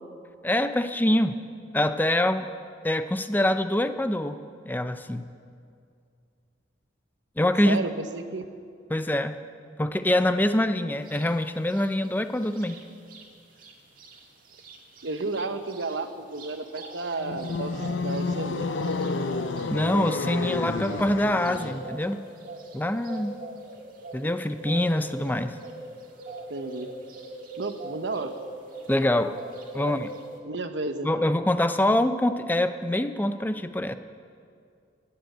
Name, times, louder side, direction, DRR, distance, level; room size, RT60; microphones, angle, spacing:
voice 1, 0.4-1.4 1.7-2.5 2.8-4.4 4.7-5.3 7.4-7.8 8.9-9.4 9.8-12.8 19.7-22.2 22.7-23.4 24.1-25.6 28.9-29.3 29.7-30.1 31.0-33.9, left 1 dB, 10° left, 10 dB, 0.5 m, -25 dB
voice 2, 7.7-8.4 15.0-18.7 26.5-26.9 27.6-28.3 29.8-30.0 30.4-31.3, right 3 dB, 70° right, 8 dB, 1.0 m, -32 dB
sound 1, 11.1-11.3 11.6-13.2 13.6-13.7 14.0-29.0 29.3-30.4, right 2 dB, 45° right, 1.8 m, -41 dB
sound 2, 17.2-21.9, left 3 dB, 75° left, 0.6 m, -30 dB
20.0 x 7.9 x 7.9 m, 2.3 s
head